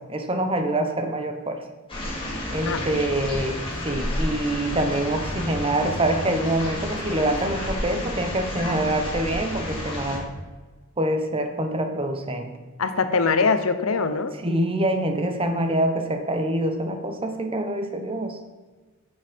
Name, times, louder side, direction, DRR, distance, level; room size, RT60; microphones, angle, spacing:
voice 1, 0.1-1.6 2.5-3.6 3.8-10.3 11.0-12.5 13.4-13.5 14.4-18.4, right 1 dB, 25° right, 6 dB, 1.0 m, -25 dB
sound 1, 1.9-10.2, left 1 dB, 25° left, 2.7 m, -31 dB
voice 2, 2.7-3.0 12.8-14.3, left 4 dB, 85° left, 9 dB, 0.9 m, -23 dB
9.6 x 7.2 x 5.2 m, 1.3 s
head